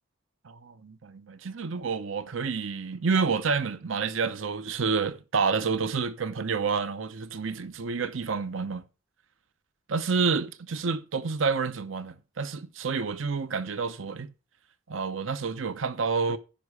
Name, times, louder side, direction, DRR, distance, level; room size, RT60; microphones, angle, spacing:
voice 1, 0.4-8.9 9.9-14.3 14.9-16.4, right 5 dB, 75° right, 0.7 m, -29 dB
14.5 x 5.4 x 4.8 m
head